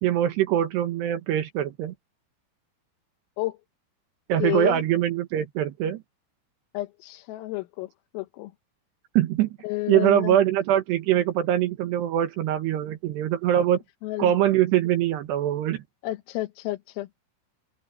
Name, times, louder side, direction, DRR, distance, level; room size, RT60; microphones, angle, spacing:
voice 1, 0.0-1.9 4.3-6.0 9.2-9.5 9.9-13.8 14.2-15.8, right 11 dB, 70° right, 2.9 m, -23 dB
voice 2, 4.4-4.8 6.7-8.5 9.6-10.4 14.0-14.3 16.0-17.1, left 18 dB, 85° left, 3.9 m, -30 dB
open air
omnidirectional pair, 5.9 m